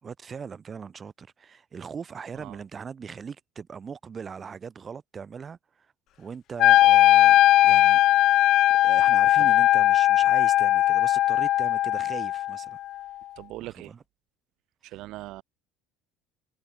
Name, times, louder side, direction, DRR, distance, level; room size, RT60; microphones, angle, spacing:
voice 1, 0.0-5.9 6.2-7.3 7.6-8.0 8.8-12.8 13.6-14.0, right 6 dB, 25° right, 4.0 m, -40 dB
Wind instrument woodwind instrument, 6.6-12.7, left 14 dB, 50° left, 0.4 m, -19 dB
voice 2, 13.4-13.9 14.8-15.4, right 17 dB, 60° right, 3.6 m, -40 dB
cardioid pair, 140°, 0 cm